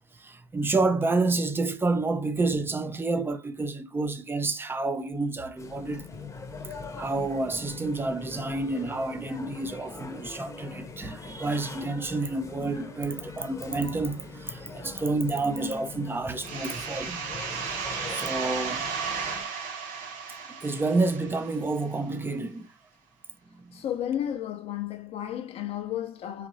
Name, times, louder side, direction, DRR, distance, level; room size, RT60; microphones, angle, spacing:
voice 1, 0.2-6.0 7.0-17.2 18.1-18.8 20.6-22.7 23.5-23.8, right 3 dB, 15° right, 0.6 m, -29 dB
sound 1, 5.6-19.4, left 3 dB, 20° left, 0.9 m, -42 dB
sound 2, 16.4-21.9, right 6 dB, 60° right, 0.9 m, -34 dB
voice 2, 23.7-26.5, left 10 dB, 45° left, 0.5 m, -32 dB
4.0 x 2.9 x 2.6 m
hypercardioid pair, 65°, 15 cm